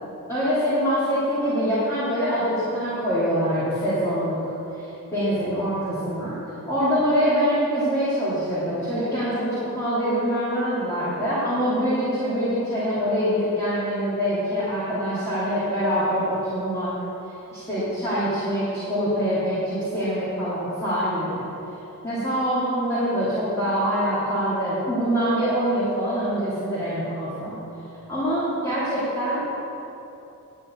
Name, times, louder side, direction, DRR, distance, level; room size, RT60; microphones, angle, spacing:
voice 1, 0.3-4.5 4.8-6.4 6.6-17.0 17.5-21.5 22.0-27.5 28.1-29.4, equal, 15° left, -12 dB, 2.7 m, -24 dB
10.5 x 5.5 x 8.6 m, 2.9 s
head